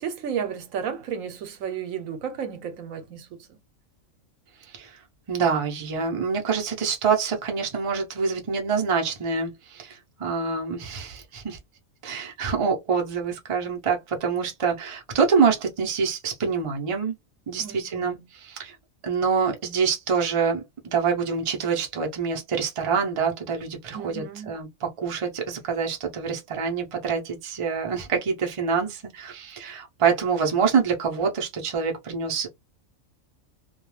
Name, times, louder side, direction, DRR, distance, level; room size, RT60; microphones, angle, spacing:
voice 1, 0.0-3.5 17.6-18.3 23.9-24.5, right 8 dB, 75° right, 1.1 m, -33 dB
voice 2, 5.3-11.6 12.0-17.1 17.5-18.8 19.0-32.5, right 6 dB, 35° right, 0.5 m, -26 dB
2.3 x 2.2 x 3.0 m
omnidirectional pair, 1.4 m